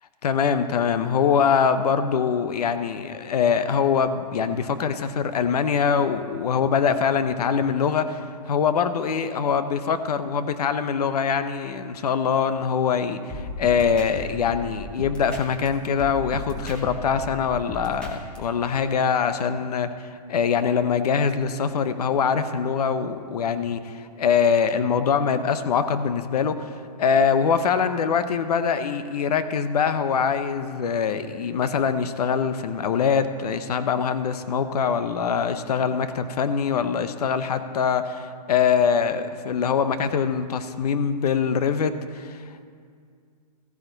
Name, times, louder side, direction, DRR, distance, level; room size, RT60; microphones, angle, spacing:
voice 1, 0.2-8.2 8.5-26.7 27.0-42.4, left 6 dB, 70° left, 11 dB, 0.8 m, -23 dB
sound 1, 13.3-15.7 16.0-18.4, left 1 dB, 5° left, 1.2 m, -35 dB
14.5 x 9.8 x 4.0 m, 2.2 s
hypercardioid pair, 155°, 21 cm